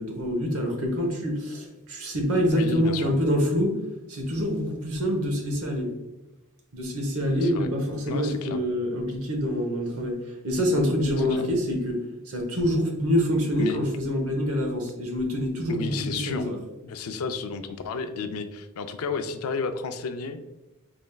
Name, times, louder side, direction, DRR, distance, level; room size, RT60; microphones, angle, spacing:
voice 1, 0.0-3.8 4.1-5.9 6.7-16.6, equal, 80° right, 1 dB, 1.0 m, -26 dB
voice 2, 2.5-3.1 7.4-7.7 8.1-8.6 11.2-11.5 13.6-13.8 15.7-16.5 16.8-20.4, left 5 dB, 80° left, 9 dB, 0.4 m, -32 dB
4.1 x 3.3 x 2.3 m, 1.1 s
head